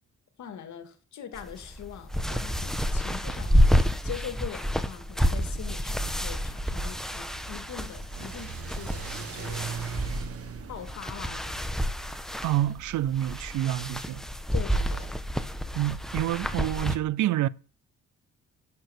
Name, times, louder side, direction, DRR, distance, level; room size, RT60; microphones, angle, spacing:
voice 1, 0.4-9.7 10.7-12.0 14.5-15.1, left 8 dB, 70° left, 2.3 m, -42 dB
sound 1, 1.3-17.0, equal, ahead, 1.2 m, -29 dB
Car / Accelerating revving vroom, 6.8-13.5, right 7 dB, 50° right, 1.3 m, -41 dB
voice 2, 12.4-14.2 15.7-17.5, right 13 dB, 75° right, 0.7 m, -27 dB
11.0 x 7.1 x 8.0 m
cardioid pair, 90°, 30 cm